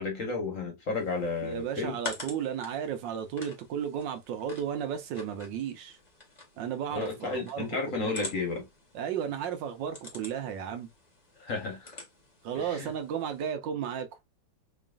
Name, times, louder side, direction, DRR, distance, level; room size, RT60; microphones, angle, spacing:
voice 1, 0.0-2.0 6.9-8.7 11.4-12.0 12.5-12.9, left 3 dB, 50° left, 1.2 m, -33 dB
sound 1, 0.9-13.5, left 2 dB, 25° left, 1.0 m, -47 dB
voice 2, 1.4-6.0 6.6-8.1 8.9-10.9 12.4-14.1, right 8 dB, 75° right, 1.3 m, -34 dB
4.5 x 3.1 x 2.4 m
omnidirectional pair, 2.1 m